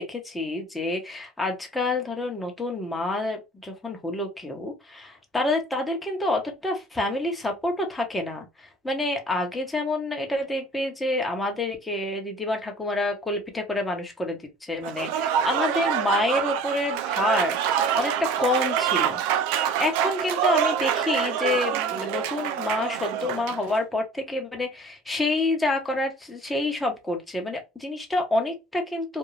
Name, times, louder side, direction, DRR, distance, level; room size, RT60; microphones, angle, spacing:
voice 1, 0.0-19.2 19.6-29.2, left 2 dB, 10° left, 1.0 m, -28 dB
Applause / Crowd, 14.8-23.7, right 10 dB, 70° right, 0.3 m, -26 dB
2.6 x 2.3 x 3.2 m
hypercardioid pair, 85°, 0 cm